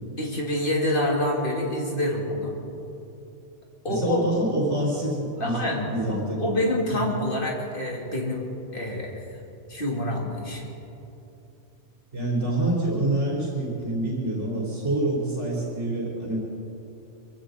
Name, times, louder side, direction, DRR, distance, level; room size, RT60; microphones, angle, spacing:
voice 1, 0.2-2.5 3.8-4.2 5.4-8.5 8.7-9.2 9.7-10.7, left 1 dB, 50° left, -2 dB, 2.8 m, -27 dB
voice 2, 3.9-5.6 5.9-7.1 12.1-16.4, right 1 dB, 80° right, -4 dB, 3.5 m, -27 dB
24.0 x 16.0 x 3.9 m, 2.8 s
omnidirectional pair, 1.2 m